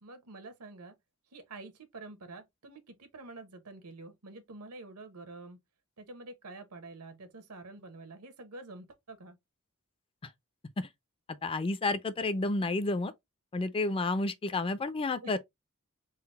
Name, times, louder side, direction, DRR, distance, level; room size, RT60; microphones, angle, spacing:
voice 1, 0.0-0.9 1.3-5.6 6.0-9.4 15.2-15.4, right 2 dB, 80° right, 1.0 m, -47 dB
voice 2, 11.4-13.1 13.5-15.4, left 2 dB, 25° left, 0.4 m, -30 dB
3.8 x 2.1 x 4.0 m
head